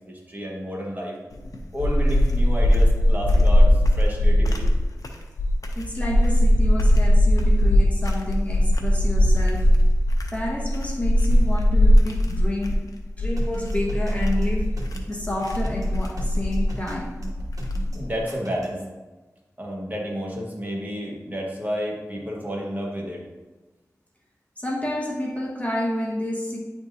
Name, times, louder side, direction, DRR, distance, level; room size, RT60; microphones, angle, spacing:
voice 1, 0.1-1.2 1.7-4.7 17.9-18.8 19.6-23.3, equal, 30° right, -2 dB, 1.5 m, -31 dB
sound 1, 1.3-18.2, equal, 75° left, 0.7 m, -20 dB
voice 2, 5.8-9.7 10.3-12.9 13.2-14.8 15.1-17.1 24.6-26.6, left 1 dB, 25° left, -2 dB, 1.2 m, -29 dB
sound 2, 13.4-18.8, right 1 dB, 70° right, 1.1 m, -39 dB
9.6 x 3.6 x 2.8 m, 1.2 s
wide cardioid pair, 50°, 6 cm